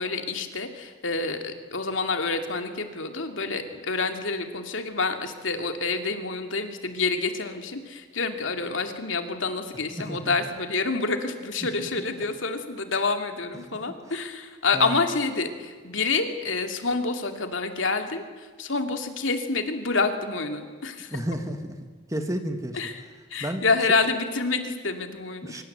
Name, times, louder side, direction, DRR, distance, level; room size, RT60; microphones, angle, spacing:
voice 1, 0.0-21.2 22.7-23.0 23.3-25.6, left 4 dB, 70° left, 6 dB, 2.6 m, -28 dB
voice 2, 10.0-10.3 14.7-14.9 21.1-21.7 22.1-22.8 23.4-23.6 25.4-25.6, right 1 dB, 15° right, 6 dB, 1.8 m, -31 dB
25.0 x 23.5 x 8.1 m, 1.5 s
head